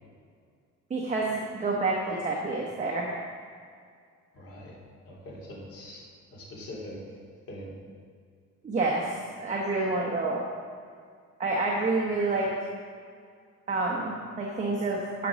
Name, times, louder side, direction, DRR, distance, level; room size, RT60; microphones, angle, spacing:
voice 1, 0.9-3.1 8.6-10.4 11.4-12.5 13.7-15.3, right 3 dB, 25° right, -2 dB, 1.0 m, -28 dB
voice 2, 4.3-4.8 5.0-6.0 6.3-7.0 7.5-7.7, left 1 dB, 50° left, -4 dB, 2.8 m, -42 dB
10.5 x 6.1 x 6.2 m, 2.1 s
cardioid pair, 175°, 31 cm